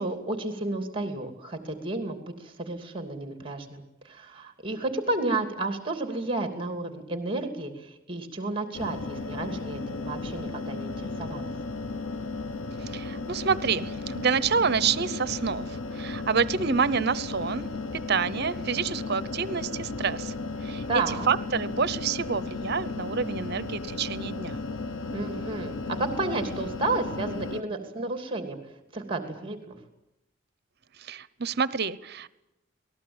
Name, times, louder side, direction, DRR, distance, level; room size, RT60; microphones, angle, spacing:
voice 1, 0.0-11.5 20.9-21.3 25.1-28.6 28.9-29.8, right 2 dB, 25° right, 7 dB, 2.8 m, -32 dB
sound 1, 8.7-27.6, left 3 dB, 85° left, 0.8 m, -35 dB
voice 2, 12.8-17.7 18.1-20.3 20.6-24.6 31.0-32.3, right 5 dB, 55° right, 17 dB, 0.9 m, -28 dB
27.0 x 19.5 x 8.9 m, 0.92 s
head